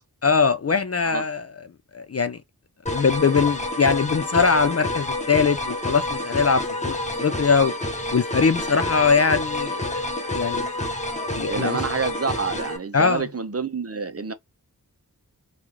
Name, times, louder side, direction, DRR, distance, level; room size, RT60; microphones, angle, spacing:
voice 1, 0.2-1.5 1.9-2.4 2.9-7.7 8.1-10.0 10.3-10.7 11.3-11.8 12.9-13.2, left 5 dB, 40° left, 0.4 m, -21 dB
sound 1, 2.9-12.8, left 1 dB, 20° left, 0.7 m, -28 dB
voice 2, 11.5-14.3, right 5 dB, 40° right, 0.6 m, -28 dB
3.0 x 2.4 x 3.6 m
wide cardioid pair, 45°, 37 cm